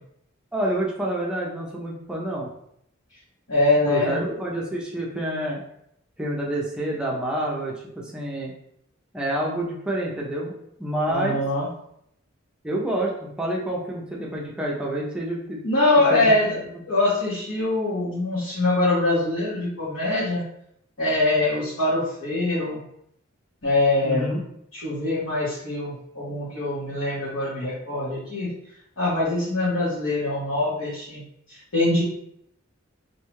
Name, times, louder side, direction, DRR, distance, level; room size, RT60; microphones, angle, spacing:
voice 1, 0.5-2.5 3.9-5.6 6.2-8.5 9.1-10.5 10.8-11.4 12.6-15.6 16.1-16.6 24.0-24.4, right 1 dB, 5° right, -4 dB, 0.5 m, -28 dB
voice 2, 3.5-4.4 11.1-11.7 15.6-16.5 16.9-20.4 21.0-22.8 23.6-24.3 24.7-28.5 29.0-31.2 31.5-32.0, left 2 dB, 75° left, -11 dB, 1.0 m, -23 dB
2.7 x 2.3 x 3.0 m, 0.73 s
head